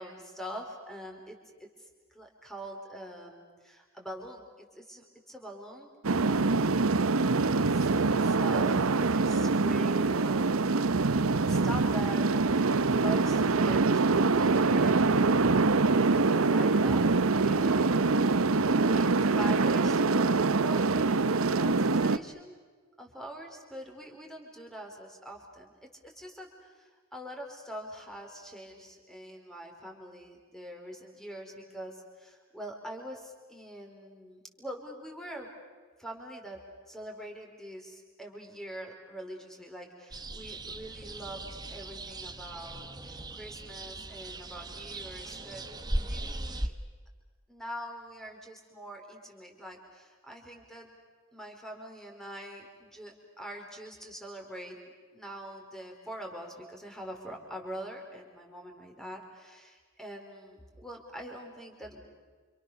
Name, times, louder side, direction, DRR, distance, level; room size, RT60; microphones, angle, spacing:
voice 1, 0.0-1.7 2.1-7.1 7.4-10.7 11.2-18.0 18.8-22.6 23.0-25.7 26.0-35.5 36.0-36.6 36.9-45.6 46.0-46.7 47.5-50.9 51.3-54.8 55.1-62.0, equal, ahead, 2 dB, 4.6 m, -44 dB
sound 1, 6.0-22.2, right 3 dB, 85° right, 0.8 m, -24 dB
sound 2, 40.1-46.7, right 1 dB, 20° right, 1.2 m, -38 dB
29.0 x 27.5 x 6.9 m, 1.4 s
head